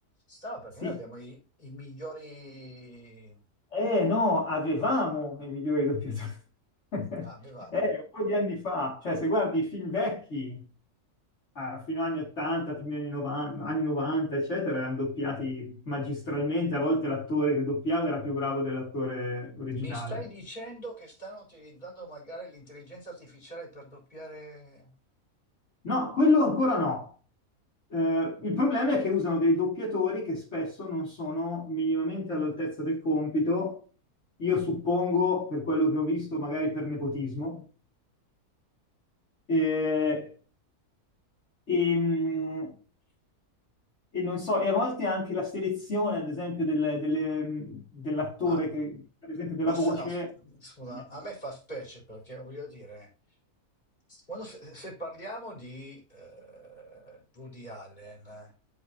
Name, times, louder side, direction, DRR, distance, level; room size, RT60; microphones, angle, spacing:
voice 1, 0.3-3.4 7.2-7.9 19.7-24.9 48.4-48.6 49.6-53.1 54.1-58.5, right 1 dB, 30° left, 4.0 m, -43 dB
voice 2, 3.7-6.4 6.9-7.3 7.7-10.6 11.6-20.2 25.8-27.1 27.9-33.8 34.4-37.6 39.5-40.3 41.7-42.7 44.1-48.9 49.3-50.3, left 2 dB, 50° left, 2.6 m, -28 dB
12.0 x 6.0 x 2.8 m
omnidirectional pair, 1.6 m